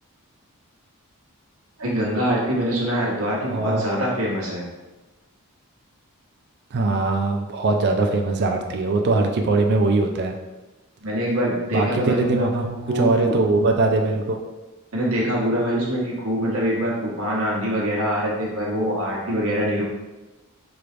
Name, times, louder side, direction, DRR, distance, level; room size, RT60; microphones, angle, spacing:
voice 1, 1.8-4.6 11.0-12.5 12.9-13.4 14.9-19.8, equal, 70° right, -5 dB, 1.2 m, -24 dB
voice 2, 3.4-3.8 6.7-10.4 11.7-14.4, right 3 dB, 50° right, 3 dB, 0.4 m, -21 dB
4.8 x 3.2 x 2.5 m, 1.1 s
head